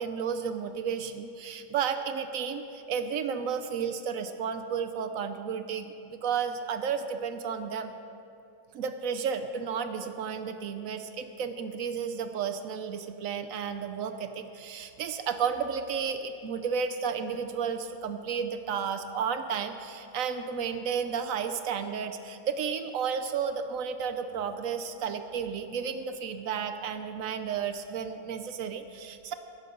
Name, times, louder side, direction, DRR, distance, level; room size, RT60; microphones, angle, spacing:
voice 1, 0.0-7.9 8.7-29.3, right 6 dB, 70° right, 8 dB, 0.9 m, -32 dB
16.0 x 6.8 x 5.3 m, 2.7 s
omnidirectional pair, 1.7 m